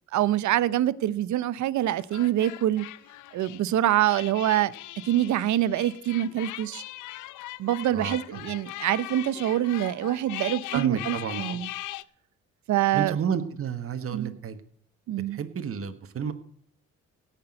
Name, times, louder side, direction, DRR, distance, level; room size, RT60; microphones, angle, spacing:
voice 1, 0.1-2.8 3.3-4.7 5.0-6.8 7.6-11.7 12.7-13.2 14.1-14.4 15.1-15.4, right 13 dB, 70° right, 0.7 m, -25 dB
sound 1, 2.0-12.0, left 16 dB, 85° left, 0.6 m, -40 dB
voice 2, 7.9-8.5 10.7-11.6 12.9-14.6 15.3-16.3, right 7 dB, 50° right, 1.4 m, -31 dB
16.5 x 6.0 x 7.7 m
cardioid pair, 90°, 30 cm